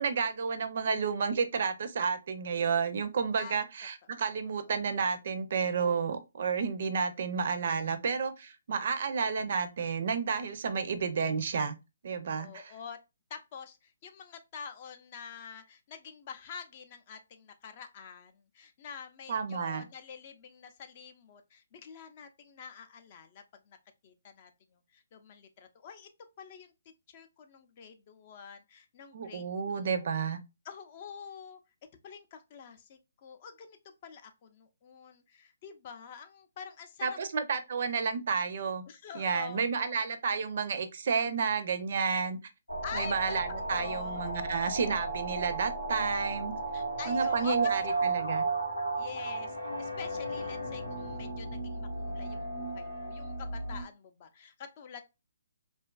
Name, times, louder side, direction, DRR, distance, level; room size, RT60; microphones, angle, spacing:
voice 1, 0.0-11.7 12.0-12.7 19.3-19.8 29.1-30.4 37.0-38.8 39.1-42.4 42.9-46.5 47.1-48.4, right 5 dB, 55° right, 0.4 m, -31 dB
voice 2, 4.2-4.8 12.4-13.0 13.3-23.8 24.0-24.5 24.9-26.1 26.4-26.7 27.1-29.4 29.7-30.1 30.7-31.6 32.0-33.8 34.0-37.2 38.9-39.9 42.8-44.2 46.7-47.7 49.0-55.0, left 7 dB, 40° left, 0.4 m, -46 dB
sound 1, 42.7-53.8, right 3 dB, 90° left, 0.7 m, -34 dB
2.5 x 2.3 x 2.2 m
hypercardioid pair, 150°, 0 cm